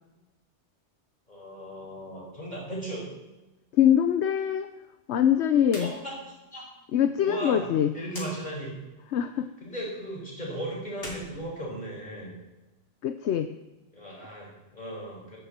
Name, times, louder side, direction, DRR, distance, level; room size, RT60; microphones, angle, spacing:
voice 1, 1.3-3.1 5.8-6.1 6.5-6.7 7.2-7.7 7.9-8.7 9.6-12.3 13.9-15.4, right 1 dB, 40° left, -3 dB, 5.3 m, -36 dB
voice 2, 3.7-4.7 5.1-5.9 6.9-7.9 9.1-9.5 13.0-13.5, left 9 dB, 75° left, 9 dB, 1.0 m, -23 dB
sound 1, 5.6-5.9 6.3-6.4 8.1-8.3 10.9-12.2, left 1 dB, 55° left, 3.2 m, -42 dB
14.5 x 14.0 x 4.4 m, 1.1 s
omnidirectional pair, 1.2 m